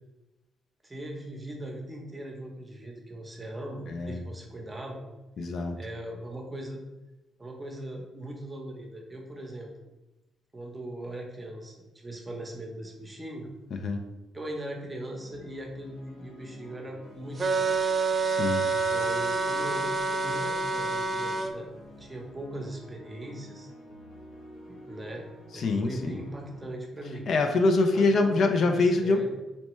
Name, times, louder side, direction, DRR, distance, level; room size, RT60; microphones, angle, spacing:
voice 1, 0.8-5.0 5.4-5.5 5.8-6.8 7.4-9.7 10.5-13.5 14.3-17.8 18.6-21.7 22.0-23.7 24.6-25.3 25.5-27.3 27.9-29.3, right 1 dB, 20° right, 1 dB, 0.8 m, -39 dB
voice 2, 3.9-4.2 5.4-5.8 13.8-14.0 18.3-18.7 25.5-26.2 27.3-29.3, left 3 dB, 60° left, 6 dB, 0.3 m, -24 dB
sound 1, 14.7-26.7, left 1 dB, 80° left, 1.1 m, -49 dB
sound 2, 17.4-21.5, right 3 dB, 35° right, 0.3 m, -27 dB
4.2 x 2.2 x 3.0 m, 1.1 s
cardioid pair, 90°, 0 cm